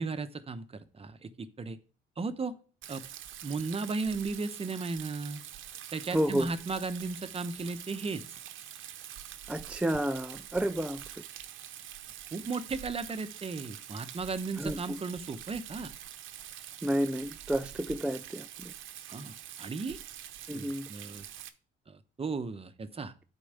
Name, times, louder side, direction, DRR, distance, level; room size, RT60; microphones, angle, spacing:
voice 1, 0.0-1.8 2.2-2.5 2.9-3.0 3.4-5.4 5.9-8.4 12.3-15.9 19.1-19.3 19.6-20.0 20.5-21.2 21.9-23.1, right 4 dB, 30° right, 0.9 m, -35 dB
Rain, 2.8-21.5, right 11 dB, 80° right, 0.8 m, -45 dB
voice 2, 6.1-6.5 9.5-11.0 14.6-15.0 16.8-18.7 20.5-20.9, right 1 dB, 5° right, 0.4 m, -31 dB
8.4 x 4.6 x 6.6 m
cardioid pair, 90°, 20 cm